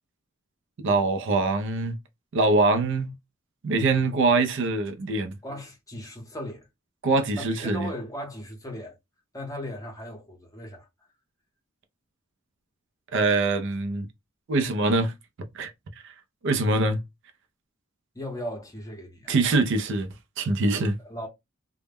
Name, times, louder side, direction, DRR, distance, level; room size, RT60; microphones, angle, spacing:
voice 1, 0.8-2.0 2.3-3.1 3.6-5.3 7.0-7.9 13.1-14.1 14.5-15.1 15.5-15.7 16.4-17.0 19.3-20.1 20.4-20.9, right 3 dB, 60° right, 0.4 m, -23 dB
voice 2, 5.4-6.7 7.4-9.0 9.3-10.9 18.1-19.3 21.0-21.3, left 1 dB, 15° left, 0.7 m, -37 dB
2.1 x 2.1 x 3.3 m
head